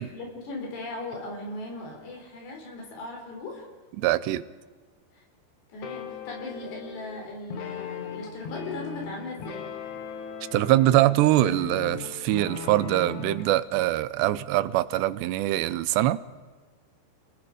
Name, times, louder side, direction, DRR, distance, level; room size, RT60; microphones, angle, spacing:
voice 1, 0.1-3.7 5.1-5.2 5.7-9.7, left 2 dB, 80° left, 0 dB, 6.4 m, -38 dB
voice 2, 4.0-4.5 10.5-16.2, right 15 dB, 85° right, 15 dB, 2.9 m, -23 dB
sound 1, 5.8-13.5, left 6 dB, 60° left, 2.3 m, -38 dB
29.5 x 18.5 x 5.0 m, 1.4 s
omnidirectional pair, 4.8 m